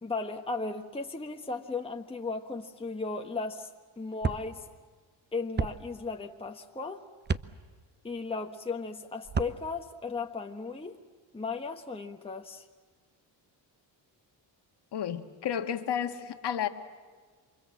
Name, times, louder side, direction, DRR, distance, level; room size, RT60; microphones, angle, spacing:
voice 1, 0.0-3.7 4.0-4.6 5.3-7.0 8.0-11.0 11.3-12.7, left 4 dB, 15° left, 1.2 m, -36 dB
sound 1, 4.2-4.4 5.6-5.7 7.2-7.5 9.2-9.6, right 5 dB, 25° right, 0.8 m, -29 dB
voice 2, 14.9-16.7, left 9 dB, 65° left, 1.8 m, -32 dB
28.5 x 24.5 x 7.6 m
cardioid pair, 90°, 44 cm